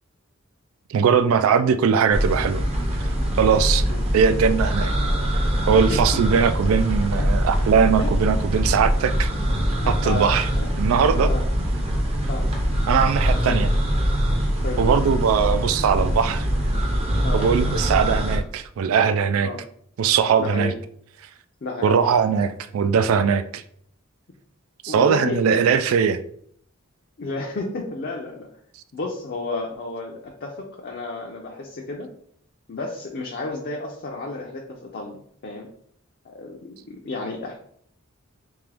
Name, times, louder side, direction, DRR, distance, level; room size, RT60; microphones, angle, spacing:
voice 1, 0.9-2.6 3.0-3.1 3.4-3.8 4.1-4.9 5.7-9.3 9.9-10.5 10.8-11.3 12.9-13.7 14.8-16.5 17.3-19.5 20.0-20.7 21.8-23.6 24.8-26.2, right 6 dB, 75° right, 12 dB, 0.3 m, -20 dB
sound 1, 2.1-18.4, equal, 30° right, 0.6 m, -23 dB
voice 2, 5.7-6.2 7.2-7.3 8.0-8.1 9.7-10.3 10.5-10.7 11.3-11.4 12.3-12.5 13.5-13.6 14.6-14.9 17.2-17.4 19.4-19.6 20.4-20.8 21.6-22.0 24.9-25.4 27.2-28.5 28.9-32.1 32.7-35.2 35.4-35.7 36.3-37.5, left 2 dB, 50° left, -1 dB, 0.5 m, -32 dB
3.6 x 2.9 x 3.3 m, 0.65 s
head